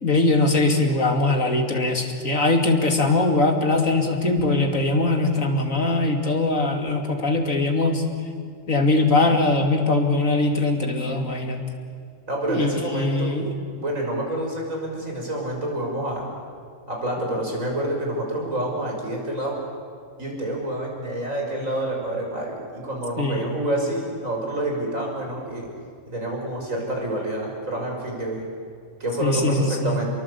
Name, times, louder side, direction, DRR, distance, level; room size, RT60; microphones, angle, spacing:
voice 1, 0.0-8.0 8.7-11.6 12.5-13.5 23.2-23.5 29.2-30.0, left 2 dB, 85° left, 4 dB, 3.1 m, -21 dB
voice 2, 12.3-13.4 13.8-16.2 16.9-19.6 20.2-25.7 26.1-28.5 29.0-30.1, right 1 dB, 85° right, 0 dB, 6.3 m, -28 dB
29.0 x 22.5 x 8.4 m, 2.1 s
omnidirectional pair, 1.3 m